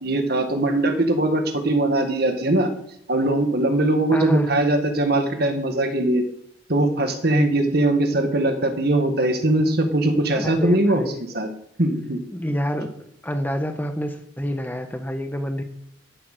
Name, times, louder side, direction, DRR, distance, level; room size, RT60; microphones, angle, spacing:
voice 1, 0.0-2.7 3.1-6.2 6.7-11.0 11.3-11.5 11.8-12.2, right 1 dB, 55° right, 6 dB, 1.8 m, -21 dB
voice 2, 4.1-4.5 10.3-11.2 12.3-15.6, equal, 10° left, 6 dB, 1.1 m, -27 dB
12.5 x 8.2 x 6.7 m, 0.70 s
head